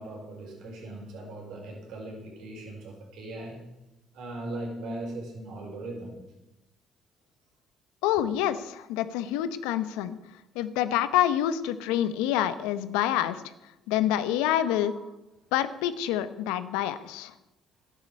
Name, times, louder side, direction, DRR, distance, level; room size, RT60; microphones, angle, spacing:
voice 1, 0.0-3.6 4.1-6.2 8.2-8.3 14.8-15.0, right 1 dB, 75° right, 0 dB, 5.4 m, -39 dB
voice 2, 8.0-10.2 10.5-13.4 13.9-14.9 15.5-17.3, left 11 dB, 85° left, 13 dB, 0.9 m, -27 dB
13.0 x 9.7 x 8.6 m, 0.97 s
supercardioid pair, 60°, 0 cm